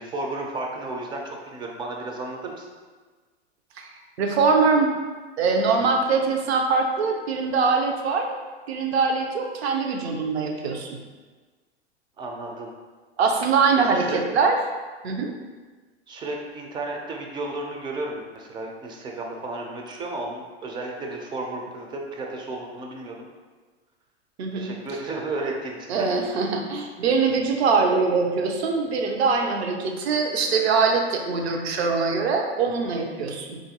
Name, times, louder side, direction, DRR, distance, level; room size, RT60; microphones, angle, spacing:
voice 1, 0.0-2.7 12.2-12.7 13.8-14.2 16.1-23.3 24.5-26.1, right 2 dB, 15° right, 0 dB, 0.3 m, -33 dB
voice 2, 4.2-5.0 5.4-8.3 8.7-11.0 13.2-14.6 15.0-15.3 24.4-24.7 25.9-33.6, right 4 dB, 70° right, 3 dB, 0.6 m, -23 dB
3.8 x 2.5 x 2.7 m, 1.4 s
hypercardioid pair, 100°, 33 cm